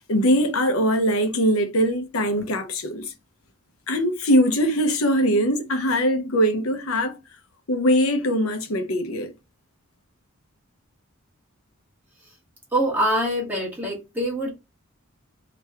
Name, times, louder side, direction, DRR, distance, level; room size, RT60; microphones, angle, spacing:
voice 1, 0.1-3.1 3.9-7.2 7.7-9.3, equal, 90° left, 0.9 m, -21 dB
voice 2, 12.7-14.5, right 1 dB, 10° right, 1.3 m, -24 dB
3.0 x 3.0 x 3.4 m
head